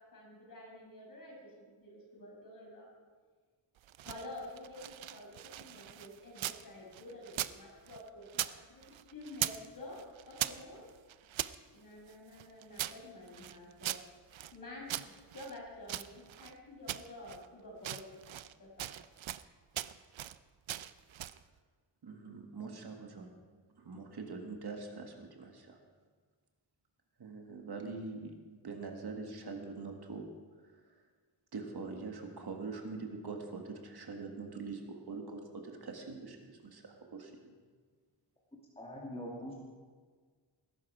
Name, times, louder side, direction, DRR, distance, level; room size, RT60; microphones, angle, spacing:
voice 1, 0.0-2.9 4.0-10.9 11.7-13.9 14.5-18.9, left 1 dB, 45° left, -3 dB, 5.8 m, -49 dB
sound 1, 3.8-6.6 6.9-8.6 8.8-9.7 9.9-11.6 12.1-14.6 14.9-16.5 16.9-17.5 17.8-18.5 18.8-19.5 19.7-20.4 20.7-21.4, right 12 dB, 85° right, 0.6 m, -40 dB
voice 2, 22.0-23.3 23.7-25.8 27.2-30.3 30.6-30.9 31.5-37.6, right 4 dB, 55° right, 3 dB, 1.9 m, -44 dB
voice 3, 38.8-39.5, equal, 10° left, -4 dB, 2.6 m, -42 dB
20.0 x 11.0 x 4.9 m, 1.5 s
wide cardioid pair, 150°, 46 cm